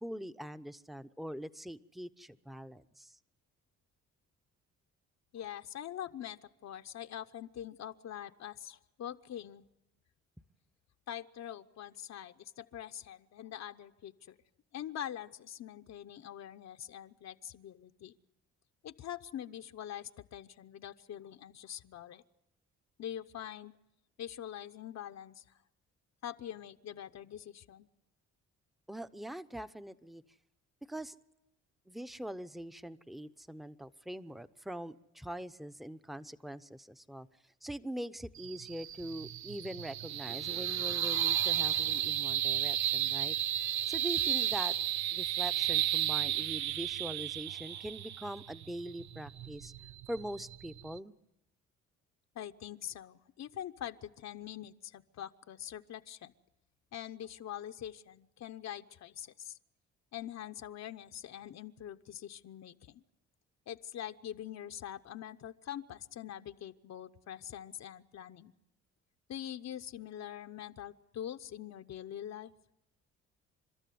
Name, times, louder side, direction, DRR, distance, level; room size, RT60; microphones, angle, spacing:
voice 1, 0.0-3.2 28.9-30.2 30.9-31.1 31.9-37.3 37.6-43.4 43.9-44.7 45.1-49.7 50.1-51.1, equal, ahead, 11 dB, 0.8 m, -43 dB
voice 2, 5.3-9.6 11.1-14.3 14.7-18.1 18.8-22.2 23.0-23.7 24.2-25.4 26.2-27.9 52.3-56.3 56.9-59.6 60.1-63.0 63.7-68.5 69.3-72.5, left 10 dB, 60° left, 8 dB, 0.9 m, -44 dB
sound 1, 38.4-51.0, right 12 dB, 65° right, 0.8 m, -33 dB
29.5 x 13.0 x 9.4 m, 0.87 s
cardioid pair, 90°, 30 cm